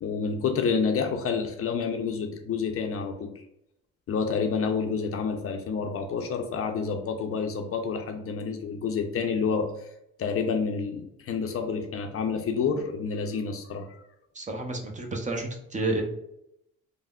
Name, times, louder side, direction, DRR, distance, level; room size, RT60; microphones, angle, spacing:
voice 1, 0.0-3.4 4.1-9.7 10.2-13.9, left 5 dB, 50° left, 5 dB, 0.5 m, -28 dB
voice 2, 14.4-16.0, right 2 dB, 25° right, 1 dB, 0.6 m, -30 dB
3.4 x 2.1 x 2.3 m, 0.78 s
cardioid pair, 90°, 30 cm